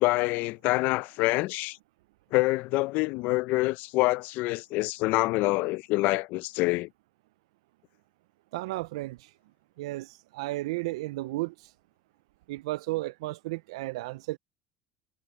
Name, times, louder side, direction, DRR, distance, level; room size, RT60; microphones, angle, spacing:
voice 1, 0.0-1.8 2.3-6.9, left 21 dB, 70° left, 0.5 m, -26 dB
voice 2, 8.5-9.3 9.8-11.5 12.5-14.4, right 19 dB, 90° right, 0.3 m, -33 dB
supercardioid pair, 95°, 3 cm